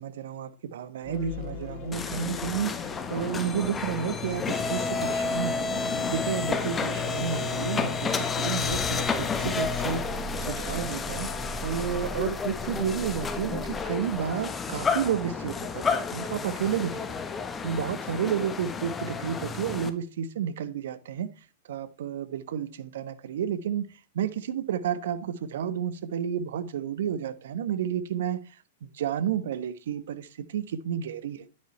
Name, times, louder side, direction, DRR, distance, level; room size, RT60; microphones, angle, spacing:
voice 1, 0.0-5.7 6.1-10.1 10.4-17.2 17.6-21.3 21.7-28.4 28.8-31.4, right 8 dB, 65° right, 1.5 m, -31 dB
sound 1, 1.0-12.9, left 8 dB, 40° left, 1.8 m, -41 dB
sound 2, 1.9-19.9, left 4 dB, 20° left, 1.7 m, -31 dB
11.5 x 10.0 x 4.3 m
hypercardioid pair, 105°, 0 cm